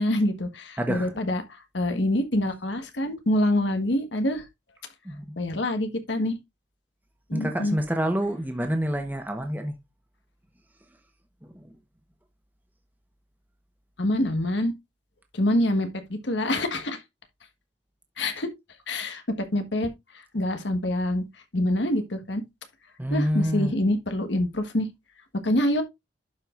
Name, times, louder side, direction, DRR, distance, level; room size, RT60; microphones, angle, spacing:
voice 1, 0.0-4.4 5.4-6.4 7.3-7.8 14.0-14.7 15.3-17.0 18.2-18.5 18.9-19.9 20.3-21.2 21.5-22.4 23.1-24.9 25.4-25.8, left 1 dB, 90° left, 1.4 m, -26 dB
voice 2, 0.8-1.1 5.0-5.4 7.3-9.7 11.4-11.6 23.0-23.8, equal, 10° right, 1.1 m, -27 dB
11.5 x 5.0 x 2.5 m
head